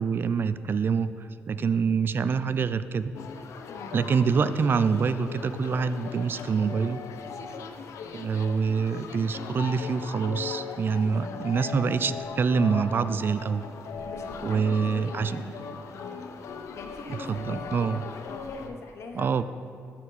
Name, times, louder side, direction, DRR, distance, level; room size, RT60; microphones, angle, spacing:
voice 1, 0.0-3.1 3.9-7.0 8.1-13.6 14.4-15.5 17.3-18.0 19.1-19.4, right 5 dB, 45° right, 13 dB, 0.3 m, -26 dB
sound 1, 3.1-18.7, left 5 dB, 80° left, 0.5 m, -39 dB
voice 2, 3.7-4.0 11.0-11.3 14.0-15.4 15.9-16.1 16.7-19.4, left 3 dB, 65° left, 3 dB, 0.9 m, -42 dB
13.0 x 4.4 x 4.1 m, 2.4 s
cardioid pair, 95°, 5 cm